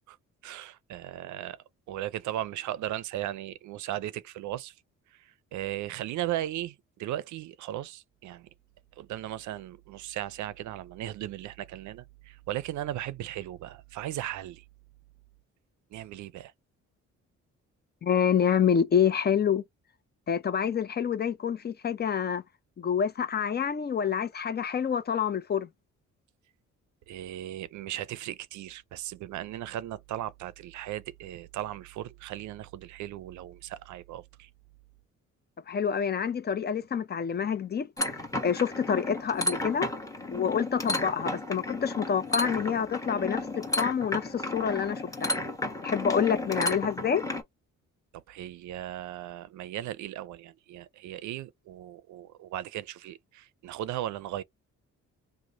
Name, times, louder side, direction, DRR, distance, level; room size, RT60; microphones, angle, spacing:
voice 1, 0.4-1.6 1.9-4.7 5.1-8.5 9.0-14.6 15.9-16.5 27.1-34.5 48.1-54.4, right 13 dB, 75° right, 0.5 m, -37 dB
voice 2, 18.0-19.6 20.3-22.4 22.8-25.7 35.7-37.9 38.4-39.9 40.3-43.5 43.8-45.3 45.8-47.2, left 7 dB, 35° left, 0.5 m, -27 dB
sound 1, 38.0-47.4, left 1 dB, 10° left, 1.2 m, -33 dB
3.0 x 2.1 x 3.8 m
cardioid pair, 90°, 30 cm